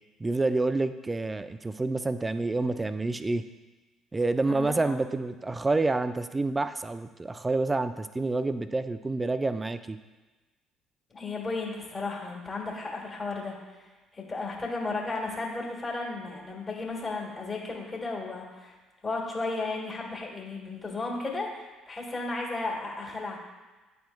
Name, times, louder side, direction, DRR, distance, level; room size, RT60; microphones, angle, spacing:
voice 1, 0.2-3.4 4.1-10.0, right 3 dB, 20° right, 12 dB, 0.3 m, -28 dB
voice 2, 4.5-5.0 11.1-13.9 14.1-18.7 19.0-23.4, left 3 dB, 25° left, -3 dB, 1.6 m, -34 dB
9.9 x 4.3 x 2.2 m, 1.2 s
figure-of-eight pair, 50°, 0 cm